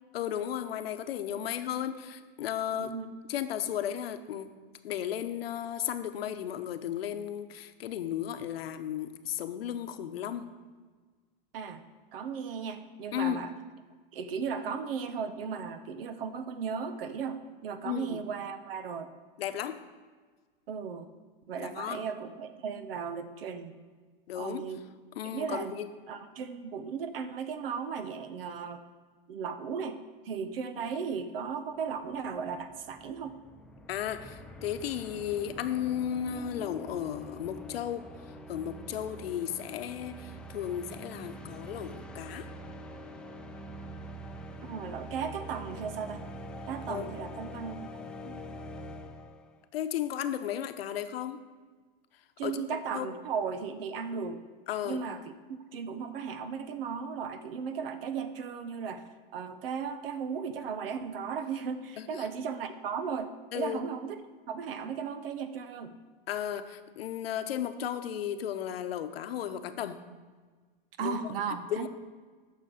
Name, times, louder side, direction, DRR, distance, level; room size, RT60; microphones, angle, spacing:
voice 1, 0.1-2.9 3.3-4.5 4.8-10.5 13.1-13.4 17.8-18.2 19.4-19.8 21.6-22.0 24.3-24.6 25.2-25.9 33.9-38.0 38.5-42.5 46.9-47.2 49.7-51.4 52.4-52.6 52.9-53.1 54.7-55.0 62.0-62.1 63.5-63.8 66.3-70.0 71.0-71.2 71.7-71.9, left 10 dB, 80° left, 9 dB, 0.9 m, -34 dB
voice 2, 2.7-3.1 11.5-11.8 12.1-13.5 14.1-19.1 20.7-21.1 21.5-23.8 24.3-24.8 25.2-25.7 26.1-28.8 29.3-30.0 30.2-33.3 44.6-46.2 46.7-47.9 48.2-48.4 52.4-54.4 54.8-55.2 55.5-59.0 59.3-64.2 64.5-65.9 71.0-71.9, right 6 dB, 75° right, 11 dB, 1.0 m, -36 dB
sound 1, 31.9-32.0 32.1-49.6, equal, 5° left, 0.3 m, -45 dB
9.6 x 6.7 x 6.5 m, 1.5 s
supercardioid pair, 140°, 29 cm